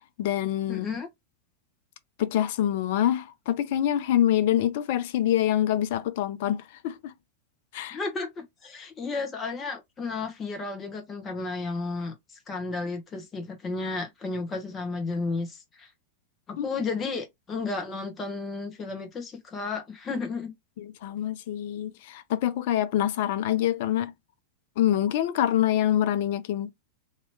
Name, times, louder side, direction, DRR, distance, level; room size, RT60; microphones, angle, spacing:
voice 1, 0.2-0.9 2.2-7.1 7.7-8.0 16.6-16.7 20.8-24.1 24.8-26.7, left 11 dB, 50° left, 0.5 m, -25 dB
voice 2, 0.7-1.1 7.9-12.1 12.5-15.9 16.5-20.5, left 3 dB, 25° left, 1.2 m, -33 dB
2.9 x 2.8 x 3.0 m
figure-of-eight pair, 90°, 0 cm